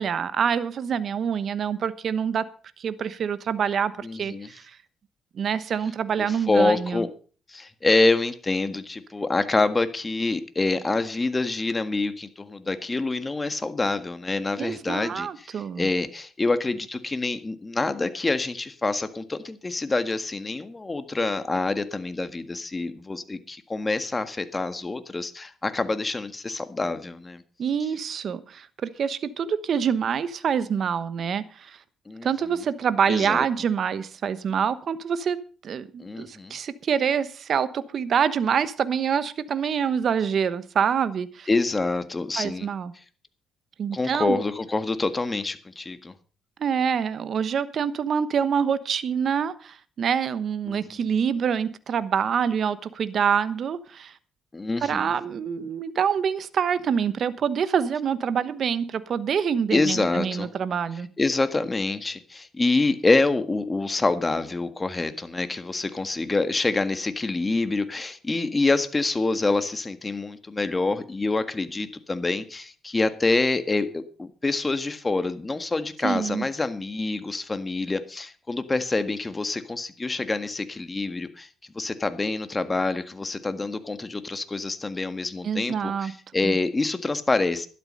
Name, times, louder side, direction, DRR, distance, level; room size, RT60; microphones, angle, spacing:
voice 1, 0.0-2.5 2.8-4.6 5.3-7.0 14.6-15.9 27.6-31.8 32.2-41.5 42.4-42.9 43.8-44.4 46.6-54.1 54.8-61.1 76.0-76.5 85.4-86.1 86.4-86.6, right 7 dB, 55° right, 14 dB, 1.0 m, -26 dB
voice 2, 4.0-4.5 6.2-7.1 7.5-27.4 32.1-32.3 33.1-33.4 36.0-36.5 41.5-42.7 43.9-46.1 50.7-50.8 54.5-55.1 59.7-60.5 61.2-81.5 81.7-87.7, left 3 dB, 20° left, 10 dB, 1.6 m, -26 dB
12.0 x 12.0 x 5.4 m, 0.39 s
cardioid pair, 90°, 0 cm